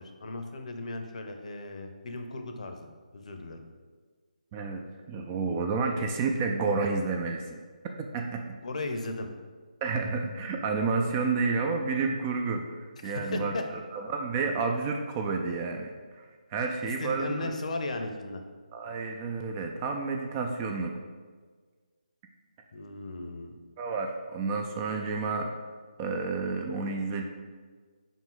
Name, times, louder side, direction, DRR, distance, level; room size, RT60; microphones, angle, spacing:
voice 1, 0.0-3.6 8.6-9.3 13.0-13.6 16.8-18.4 22.7-23.6, left 2 dB, 50° left, 5 dB, 0.7 m, -36 dB
voice 2, 4.5-4.8 5.1-7.6 8.0-8.6 9.8-17.5 18.7-20.9 23.8-25.5 26.0-27.2, right 4 dB, 20° right, 3 dB, 0.3 m, -30 dB
5.1 x 5.0 x 3.9 m, 1.5 s
figure-of-eight pair, 155°, 5 cm